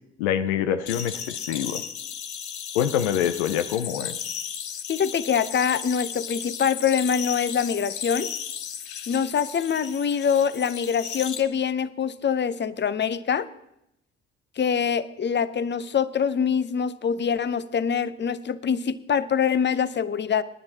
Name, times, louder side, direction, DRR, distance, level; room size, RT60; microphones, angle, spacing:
voice 1, 0.2-1.8 2.7-4.3, left 9 dB, 85° left, 10 dB, 0.6 m, -25 dB
sound 1, 0.9-11.4, left 8 dB, 65° left, 1.1 m, -35 dB
voice 2, 4.9-8.3 9.1-13.5 14.6-20.4, left 7 dB, 35° left, 15 dB, 0.7 m, -24 dB
29.5 x 10.5 x 2.8 m, 0.81 s
hypercardioid pair, 40°, 32 cm